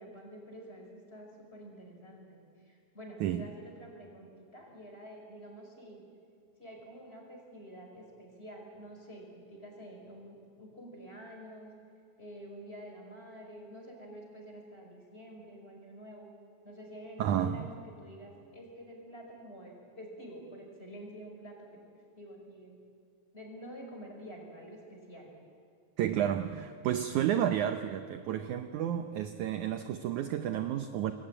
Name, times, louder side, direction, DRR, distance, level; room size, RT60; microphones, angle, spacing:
voice 1, 0.0-6.0 6.6-11.7 12.2-16.3 16.6-21.7 22.2-22.8 23.3-25.3, equal, 15° left, 0 dB, 5.4 m, -48 dB
voice 2, 17.2-17.7 26.0-31.1, right 10 dB, 70° right, 8 dB, 1.9 m, -31 dB
28.0 x 21.5 x 8.9 m, 2.4 s
omnidirectional pair, 4.3 m